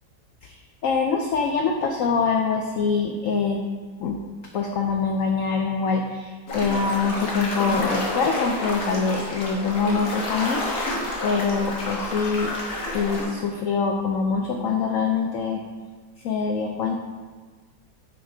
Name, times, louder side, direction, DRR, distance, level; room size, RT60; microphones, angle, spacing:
voice 1, 0.4-3.6 4.0-4.2 4.5-10.9 11.2-12.5 12.9-15.6 16.2-16.9, left 5 dB, 80° left, 3 dB, 0.7 m, -24 dB
sound 1, 6.5-13.3, left 2 dB, 55° left, 1.5 m, -29 dB
6.1 x 4.0 x 4.6 m, 1.5 s
omnidirectional pair, 1.9 m